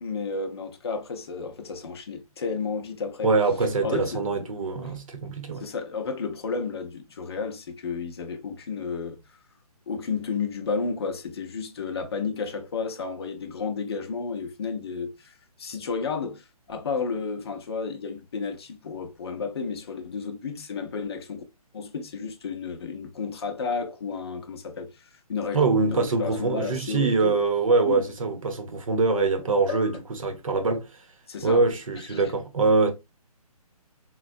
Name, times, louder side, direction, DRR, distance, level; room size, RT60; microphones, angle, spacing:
voice 1, 0.0-3.3 3.8-4.2 5.6-9.2 9.9-21.4 21.7-27.4 27.8-28.0 29.7-29.9 31.3-31.7 32.0-32.2, left 5 dB, 40° left, 0.6 m, -32 dB
voice 2, 3.2-5.6 25.5-31.0 31.4-32.9, right 3 dB, 60° right, 0.8 m, -24 dB
3.8 x 2.1 x 2.5 m
hypercardioid pair, 170°, 20 cm